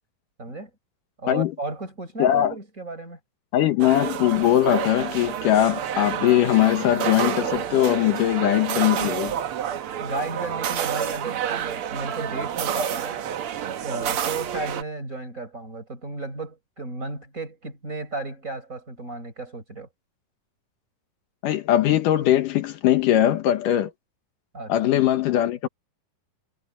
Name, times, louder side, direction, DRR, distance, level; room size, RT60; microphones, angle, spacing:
voice 1, 0.4-0.7 1.2-3.2 9.9-13.2 13.8-19.9 24.5-24.7, right 3 dB, 20° right, 5.9 m, -34 dB
voice 2, 2.2-2.6 3.5-9.3 21.4-23.9 24.7-25.7, left 12 dB, 75° left, 2.7 m, -20 dB
sound 1, 3.8-14.8, right 9 dB, 65° right, 1.4 m, -29 dB
omnidirectional pair, 3.8 m